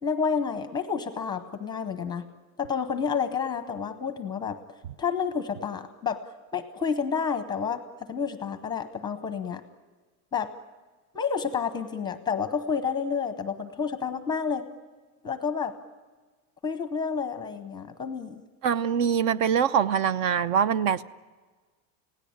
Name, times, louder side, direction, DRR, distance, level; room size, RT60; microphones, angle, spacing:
voice 1, 0.0-2.2 2.6-4.6 5.0-6.2 6.5-7.8 8.1-9.6 10.3-10.5 11.1-14.7 15.2-15.7 16.6-18.4, left 6 dB, 10° left, 10 dB, 0.7 m, -29 dB
voice 2, 18.6-21.0, right 7 dB, 60° right, 17 dB, 0.8 m, -23 dB
30.0 x 17.5 x 8.7 m, 1.4 s
supercardioid pair, 175°, 45 cm